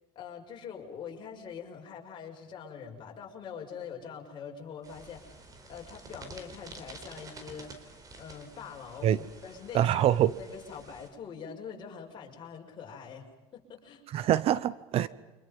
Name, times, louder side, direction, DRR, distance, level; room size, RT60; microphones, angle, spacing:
voice 1, 0.1-10.0 10.4-13.3 13.5-14.0, left 6 dB, 35° left, 0 dB, 6.4 m, -44 dB
sound 1, 4.8-11.1, right 2 dB, 30° right, 4.3 m, -50 dB
voice 2, 9.7-10.4 14.1-15.1, right 11 dB, 50° right, 18 dB, 0.8 m, -25 dB
30.0 x 26.0 x 5.5 m, 1.2 s
cardioid pair, 125°, 13 cm